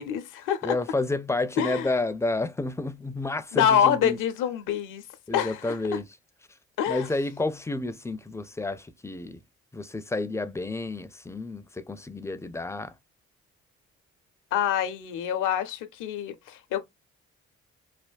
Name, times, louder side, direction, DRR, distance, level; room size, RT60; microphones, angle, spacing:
voice 1, 0.0-0.8 1.6-2.0 3.5-5.0 5.3-6.0 6.8-7.1 14.5-16.8, left 9 dB, 75° left, 0.6 m, -26 dB
voice 2, 0.6-4.2 5.3-6.1 6.9-9.4 9.7-12.9, left 2 dB, 10° left, 0.4 m, -30 dB
3.3 x 2.1 x 2.2 m
hypercardioid pair, 45°, 32 cm